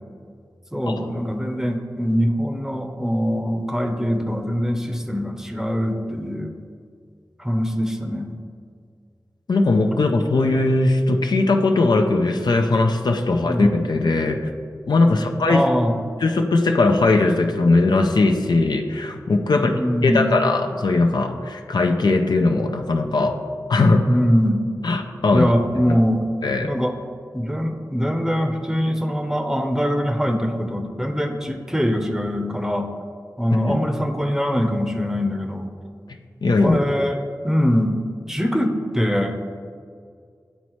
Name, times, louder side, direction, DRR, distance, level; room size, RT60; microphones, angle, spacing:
voice 1, 0.7-6.5 7.4-8.4 13.5-13.7 15.0-15.9 19.5-20.3 24.1-24.7 25.3-26.2 26.6-27.0 27.3-32.9 33.4-35.7 36.6-37.2 37.4-38.0 38.3-39.4, equal, 5° right, 4 dB, 0.7 m, -23 dB
voice 2, 9.5-14.4 14.9-15.6 16.2-19.7 20.0-23.4 23.7-24.0 24.8-25.5 26.4-26.7 33.7-33.8 36.4-36.8, left 3 dB, 70° left, 4 dB, 0.5 m, -19 dB
10.0 x 4.1 x 3.1 m, 2.2 s
cardioid pair, 45°, 7 cm